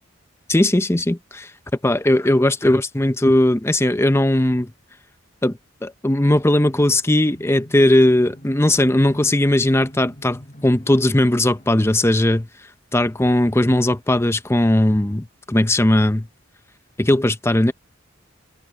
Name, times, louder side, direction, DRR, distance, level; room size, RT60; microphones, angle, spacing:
voice 1, 0.5-1.5 1.8-4.7 5.4-12.5 12.9-16.3 17.0-17.7, left 1 dB, 10° left, 0.7 m, -18 dB
sound 1, 7.3-11.9, equal, 35° left, 7.0 m, -43 dB
head